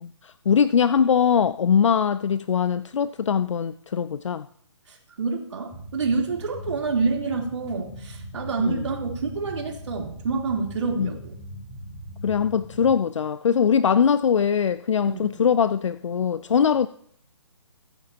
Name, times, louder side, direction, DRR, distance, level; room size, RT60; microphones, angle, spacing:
voice 1, 0.0-4.4 8.7-8.8 11.0-11.1 12.2-16.9, left 7 dB, 75° left, 0.5 m, -21 dB
voice 2, 4.9-11.4 15.1-15.3, right 4 dB, 65° right, 3.3 m, -28 dB
sound 1, 5.7-12.9, equal, 10° left, 5.1 m, -40 dB
22.5 x 9.0 x 2.9 m
hypercardioid pair, 150°, 16 cm